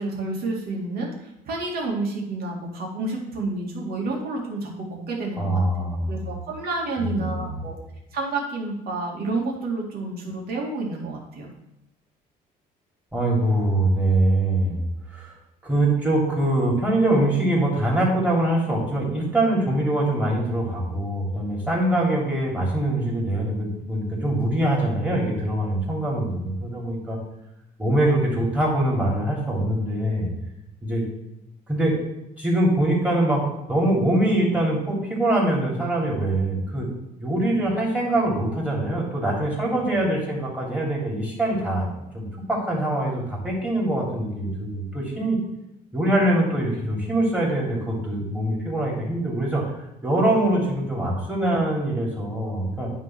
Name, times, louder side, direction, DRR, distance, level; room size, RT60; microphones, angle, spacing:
voice 1, 0.0-5.6 6.1-7.7 8.1-11.5, right 2 dB, 65° right, -1 dB, 2.3 m, -29 dB
voice 2, 5.4-6.1 7.0-7.4 13.1-14.8 15.1-15.3 15.6-27.2 27.8-30.3 30.8-31.0 31.7-31.9 32.4-33.4 33.7-36.9 37.2-41.9 42.1-45.4 45.9-49.6 50.0-52.9, right 1 dB, 10° right, -4 dB, 3.3 m, -23 dB
9.6 x 3.8 x 6.0 m, 0.84 s
cardioid pair, 110°, 17 cm